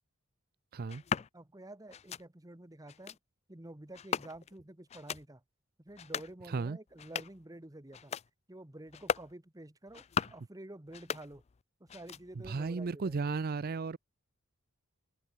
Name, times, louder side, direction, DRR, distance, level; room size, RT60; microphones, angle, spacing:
voice 1, 0.7-1.0 6.5-6.8 12.4-14.0, right 4 dB, 45° right, 0.5 m, -34 dB
sound 1, 0.9-1.3 1.9-2.2 2.9-3.2 3.9-4.6 4.9-5.3 5.9-6.3 6.9-7.4 7.9-8.3 8.9-9.3 9.9-10.5 10.9-11.6 11.9-12.5, left 7 dB, 30° left, 0.4 m, -38 dB
voice 2, 1.3-3.2 3.5-5.4 5.8-8.2 8.5-10.0 10.3-11.4 11.8-13.4, right 1 dB, 15° right, 1.2 m, -49 dB
open air
head